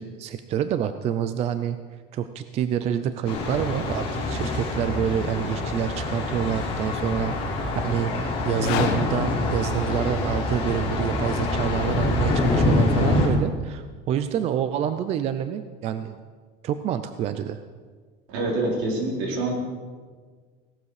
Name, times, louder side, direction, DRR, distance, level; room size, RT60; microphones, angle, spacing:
voice 1, 0.0-1.8 2.1-7.3 7.8-16.2 16.6-17.6, right 9 dB, 30° right, 11 dB, 0.5 m, -27 dB
Thunder, 3.2-13.3, left 2 dB, 25° left, 2.6 m, -26 dB
Maximum warp, 8.4-10.5, left 7 dB, 55° left, 1.6 m, -29 dB
voice 2, 18.3-19.5, right 2 dB, 75° right, -1 dB, 4.1 m, -26 dB
17.5 x 12.0 x 4.9 m, 1.5 s
cardioid pair, 175°, 21 cm